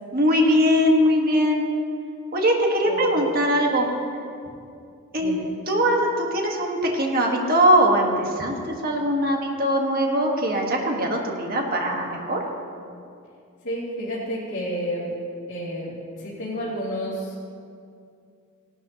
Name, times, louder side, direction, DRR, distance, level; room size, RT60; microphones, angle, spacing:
voice 1, 0.1-1.6 2.3-3.9 5.1-8.6 8.8-12.4, equal, 40° right, 0 dB, 1.6 m, -21 dB
voice 2, 2.8-3.2 5.2-5.5 13.6-15.1 15.5-15.9 16.2-17.5, equal, 55° left, -11 dB, 3.0 m, -30 dB
17.5 x 12.0 x 3.0 m, 2.4 s
head